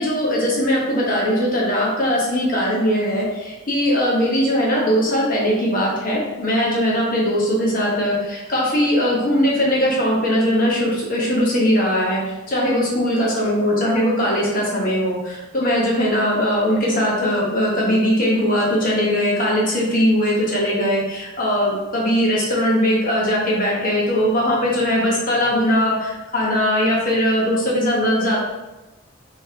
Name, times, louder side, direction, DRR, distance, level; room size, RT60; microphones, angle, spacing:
voice 1, 0.0-28.4, equal, 40° left, -4 dB, 1.1 m, -20 dB
4.2 x 3.1 x 3.4 m, 1.1 s
head